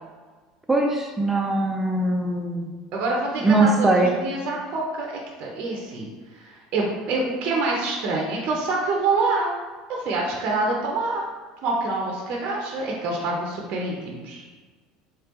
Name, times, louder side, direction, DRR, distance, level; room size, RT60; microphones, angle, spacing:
voice 1, 0.7-2.7 3.4-4.1, right 2 dB, 10° right, 0 dB, 0.6 m, -21 dB
voice 2, 2.9-5.1 5.4-9.5 9.9-11.2 11.6-14.4, right 3 dB, 60° right, -1 dB, 0.7 m, -26 dB
3.3 x 3.2 x 2.9 m, 1.4 s
hypercardioid pair, 80°, 2 cm